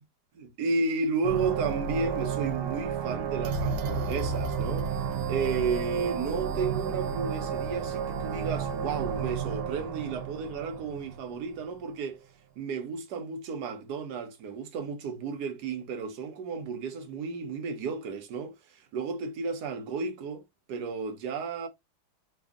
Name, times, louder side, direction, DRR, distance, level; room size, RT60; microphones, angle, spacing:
voice 1, 0.6-4.9 5.3-12.2 12.6-20.4 20.7-21.7, right 4 dB, 60° right, 1.2 m, -32 dB
sound 1, 1.2-11.8, right 6 dB, 80° right, 1.5 m, -32 dB
3.4 x 2.5 x 3.5 m
omnidirectional pair, 2.3 m